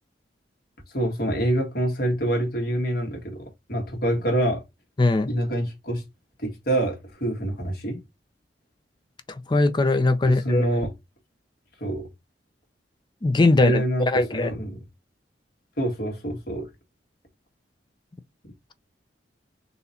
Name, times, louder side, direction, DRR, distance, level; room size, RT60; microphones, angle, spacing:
voice 1, 0.9-4.6 5.3-6.0 6.4-8.0 10.2-10.9 11.8-12.1 13.5-14.9 15.8-16.7, right 1 dB, 55° left, 1.6 m, -26 dB
voice 2, 5.0-5.3 9.5-10.6 13.2-14.5, left 2 dB, 25° left, 0.4 m, -20 dB
4.1 x 2.9 x 4.0 m
head